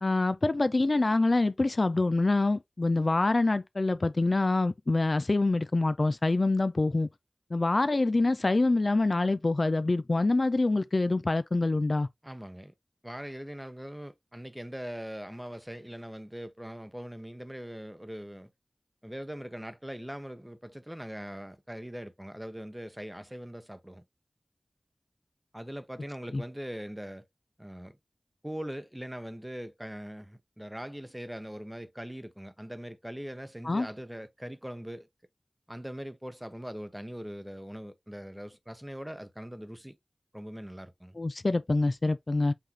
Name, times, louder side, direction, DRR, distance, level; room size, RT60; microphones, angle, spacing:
voice 1, 0.0-7.1 7.5-12.1 26.3-26.4 33.6-33.9 41.2-42.5, left 2 dB, 60° left, 0.4 m, -26 dB
voice 2, 12.2-12.7 13.0-18.5 19.0-24.0 25.5-27.2 27.6-28.0 28.4-35.1 35.7-40.0 40.3-41.2, equal, 10° right, 0.8 m, -41 dB
5.8 x 3.2 x 2.7 m
wide cardioid pair, 45°, 0 cm